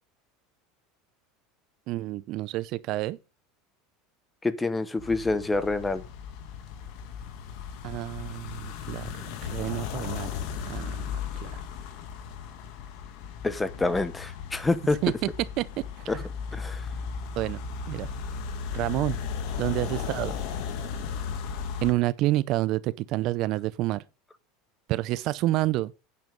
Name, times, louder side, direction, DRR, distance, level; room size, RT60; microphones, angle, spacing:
voice 1, 1.9-3.2 7.8-10.3 10.7-11.6 15.0-15.1 15.6-15.7 17.4-17.6 17.9-18.1 18.7-19.2 19.6-20.4 21.8-24.0 24.9-25.9, right 17 dB, 50° right, 0.5 m, -28 dB
voice 2, 4.4-6.0 13.4-15.0 16.1-16.2 16.5-16.8, left 3 dB, 10° left, 1.0 m, -27 dB
sound 1, 5.0-21.9, left 6 dB, 60° left, 2.0 m, -36 dB
9.4 x 7.0 x 5.2 m
supercardioid pair, 140°, 0 cm